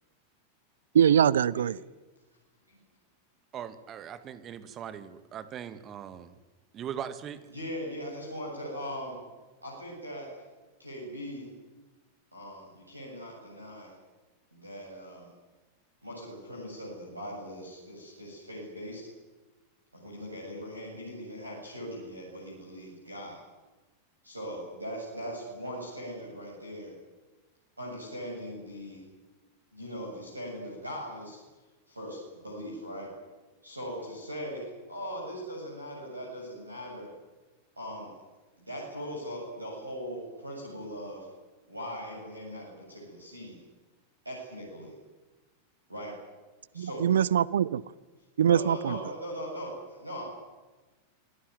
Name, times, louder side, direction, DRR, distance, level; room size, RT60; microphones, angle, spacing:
voice 1, 0.9-1.8 46.8-47.8 48.4-49.0, right 9 dB, 65° right, 22 dB, 0.7 m, -23 dB
voice 2, 3.5-6.4 6.7-7.4, right 9 dB, 30° right, 12 dB, 2.0 m, -40 dB
voice 3, 7.5-9.2 9.6-10.3 10.8-11.5 12.3-13.9 14.5-15.3 16.0-19.1 19.9-23.4 24.2-26.9 27.8-29.0 29.7-31.4 31.9-33.1 33.6-37.1 37.8-38.1 38.6-41.3 41.7-43.6 44.2-44.9 45.9-46.1 46.7-47.1 48.4-50.2, equal, 85° right, -2 dB, 7.6 m, -40 dB
27.0 x 18.0 x 9.6 m, 1.2 s
figure-of-eight pair, 90°, 0 cm